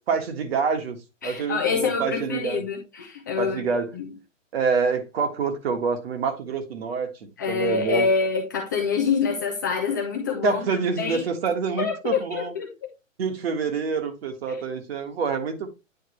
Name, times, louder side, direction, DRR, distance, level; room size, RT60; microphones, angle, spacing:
voice 1, 0.1-2.6 3.4-3.9 4.5-8.1 10.4-12.5 13.2-15.7, right 5 dB, 50° right, 1.6 m, -27 dB
voice 2, 1.2-3.7 3.9-4.1 7.4-10.6 11.0-11.2 11.8-12.9, left 5 dB, 15° left, 0.4 m, -26 dB
9.4 x 3.6 x 3.2 m
hypercardioid pair, 135°, 39 cm